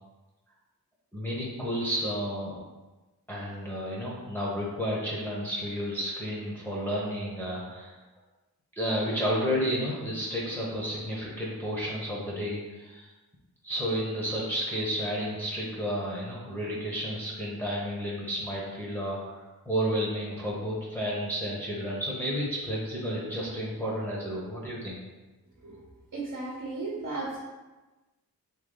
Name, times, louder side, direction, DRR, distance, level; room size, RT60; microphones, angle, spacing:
voice 1, 1.1-2.6 3.3-8.0 8.8-13.1 13.6-25.0, equal, 5° left, -6 dB, 1.0 m, -31 dB
voice 2, 26.1-27.4, right 3 dB, 45° right, -5 dB, 1.1 m, -35 dB
3.2 x 3.0 x 3.9 m, 1.2 s
cardioid pair, 60°, 38 cm